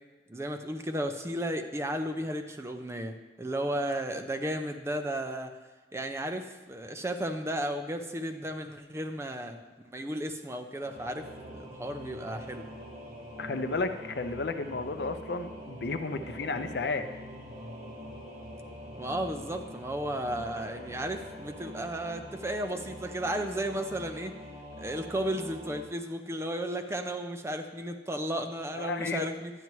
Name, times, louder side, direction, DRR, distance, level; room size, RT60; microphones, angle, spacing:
voice 1, 0.3-5.5 5.9-9.6 9.9-12.7 19.0-24.4 24.8-29.5, right 1 dB, 15° right, 6 dB, 0.5 m, -34 dB
Singing / Musical instrument, 10.8-25.8, equal, 35° right, 1.6 m, -44 dB
voice 2, 13.4-17.1 28.7-29.3, left 3 dB, 65° left, 8 dB, 0.5 m, -33 dB
11.0 x 9.3 x 3.1 m, 1.2 s
head